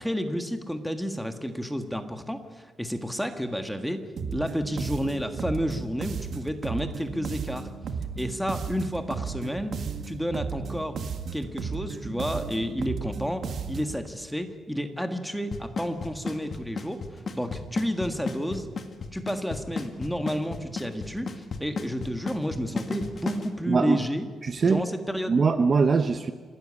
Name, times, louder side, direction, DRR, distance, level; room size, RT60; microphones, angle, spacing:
voice 1, 0.0-7.7 8.2-9.8 10.1-11.0 11.3-18.7 19.1-24.3 24.6-25.4, equal, ahead, 7 dB, 1.6 m, -31 dB
sound 1, 4.2-14.0, right 5 dB, 55° right, 1.7 m, -34 dB
Drum kit / Snare drum / Bass drum, 15.5-23.5, left 5 dB, 40° left, 1.9 m, -33 dB
voice 2, 23.7-24.0 24.4-24.8 25.3-26.3, right 4 dB, 35° right, 10 dB, 0.8 m, -22 dB
27.5 x 13.0 x 9.8 m, 1.5 s
cardioid pair, 145°, 0 cm